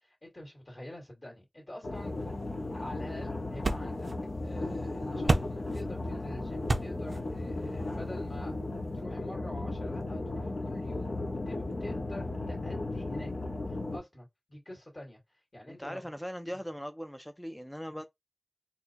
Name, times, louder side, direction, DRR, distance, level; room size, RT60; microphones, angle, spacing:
voice 1, 0.0-2.3 2.7-4.1 4.4-8.5 9.0-13.3 13.7-15.2 15.5-16.1, left 1 dB, 40° left, 1.7 m, -46 dB
sound 1, 1.8-14.0, left 2 dB, 70° left, 0.7 m, -35 dB
sound 2, 1.9-9.0, right 2 dB, 55° right, 0.5 m, -36 dB
voice 2, 15.7-18.0, equal, 5° left, 0.4 m, -40 dB
4.2 x 2.1 x 2.8 m
wide cardioid pair, 80°, 0 cm